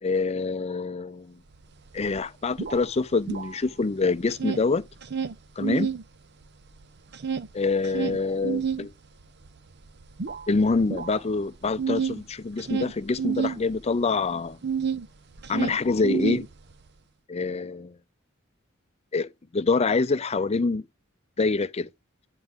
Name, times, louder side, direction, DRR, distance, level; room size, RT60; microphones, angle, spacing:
voice 1, 0.0-1.4 1.9-4.8 5.6-5.9 7.5-8.9 10.5-14.6 15.5-16.5 17.3-18.0 19.1-20.8 21.4-21.9, left 4 dB, 30° left, 0.5 m, -26 dB
sound 1, 1.5-1.6 1.9-3.9 4.2-6.0 6.4-15.1 15.3-16.9, right 6 dB, 55° right, 0.6 m, -30 dB
9.5 x 4.6 x 3.7 m
head